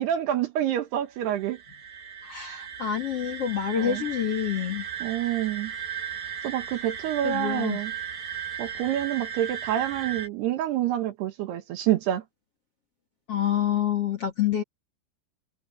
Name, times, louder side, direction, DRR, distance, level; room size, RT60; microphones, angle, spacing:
voice 1, 0.0-1.6 3.8-4.0 5.0-5.7 6.4-7.9 8.6-12.2, right 12 dB, 70° right, 3.1 m, -27 dB
sound 1, 1.2-10.3, right 8 dB, 50° right, 9.0 m, -36 dB
voice 2, 2.2-4.8 7.2-7.8 13.3-14.6, left 10 dB, 45° left, 2.2 m, -27 dB
omnidirectional pair, 5.3 m